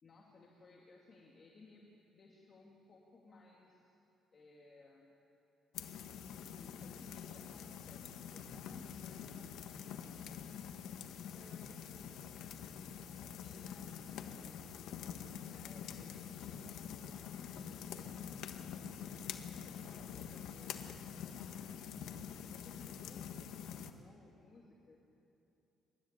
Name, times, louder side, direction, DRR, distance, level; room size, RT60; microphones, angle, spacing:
voice 1, 0.0-3.9 4.3-5.2 6.4-10.2 11.2-12.6 13.2-14.6 15.2-18.8 19.5-20.8 21.1-22.2 22.5-25.0, left 3 dB, 35° left, -2 dB, 2.4 m, -61 dB
sound 1, 5.7-23.9, left 8 dB, 80° left, 1.3 m, -46 dB
26.0 x 13.0 x 9.9 m, 2.8 s
cardioid pair, 130°, 0 cm